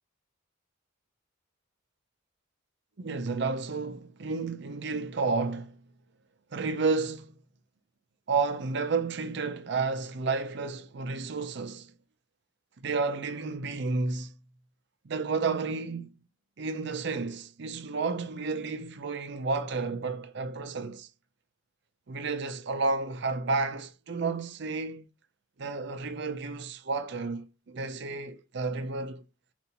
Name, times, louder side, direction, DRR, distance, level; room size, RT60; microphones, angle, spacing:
voice 1, 3.0-5.8 6.5-7.3 8.3-11.9 12.8-14.3 15.0-16.1 16.6-21.1 22.1-25.1 25.6-29.2, right 4 dB, 55° right, 0.5 m, -31 dB
5.2 x 2.6 x 2.8 m
head